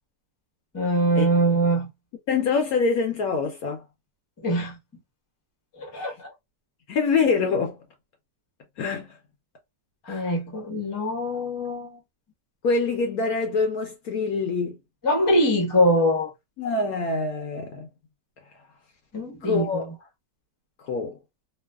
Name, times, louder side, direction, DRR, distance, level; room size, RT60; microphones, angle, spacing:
voice 1, 0.7-1.9 4.4-4.8 5.8-6.3 10.1-12.0 15.0-16.3 19.1-19.9, equal, 20° left, 0.6 m, -23 dB
voice 2, 2.3-3.8 5.9-6.1 6.9-7.8 8.8-9.2 10.0-10.3 12.6-14.8 16.6-17.9 19.4-19.9 20.8-21.2, left 4 dB, 65° left, 1.0 m, -25 dB
3.1 x 2.0 x 2.3 m
omnidirectional pair, 1.9 m